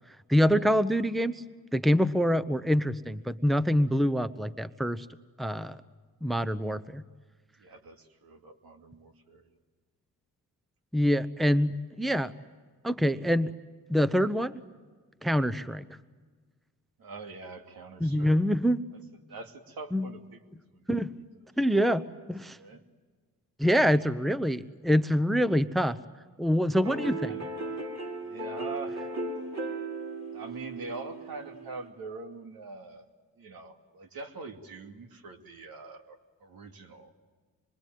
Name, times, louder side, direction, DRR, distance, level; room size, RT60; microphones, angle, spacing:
voice 1, 0.3-1.4 1.7-5.1 5.4-5.8 6.2-7.0 10.9-12.3 12.8-13.5 13.9-14.5 15.2-15.8 18.0-18.8 19.9-20.1 20.9-21.2 21.6-22.6 23.6-26.0 26.4-27.3, equal, ahead, 14 dB, 0.8 m, -25 dB
voice 2, 7.6-9.5 17.0-18.4 19.3-20.4 20.7-20.9 21.7-21.9 22.6-22.8 26.7-27.8 28.2-29.1 30.3-33.1 33.4-37.1, right 3 dB, 75° right, 4 dB, 2.6 m, -44 dB
sound 1, 26.8-31.9, right 2 dB, 45° right, 5.2 m, -37 dB
26.5 x 22.5 x 9.3 m, 1.5 s
cardioid pair, 70°, 36 cm